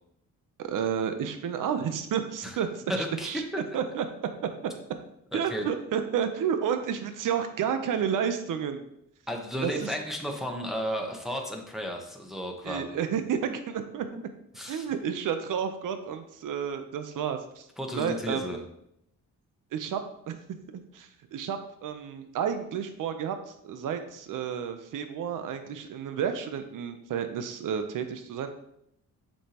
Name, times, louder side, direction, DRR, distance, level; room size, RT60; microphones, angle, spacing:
voice 1, 0.6-3.4 3.7-4.0 4.4-4.7 5.3-8.8 9.6-9.9 12.6-14.1 14.6-17.7 17.9-18.6 19.7-20.4 20.7-28.5, right 8 dB, 75° right, 8 dB, 0.8 m, -31 dB
voice 2, 2.9-3.4 5.3-5.7 9.3-12.8 14.5-14.9 17.8-18.6, equal, ahead, 1 dB, 1.0 m, -33 dB
7.1 x 5.5 x 2.9 m, 0.76 s
cardioid pair, 110°, 32 cm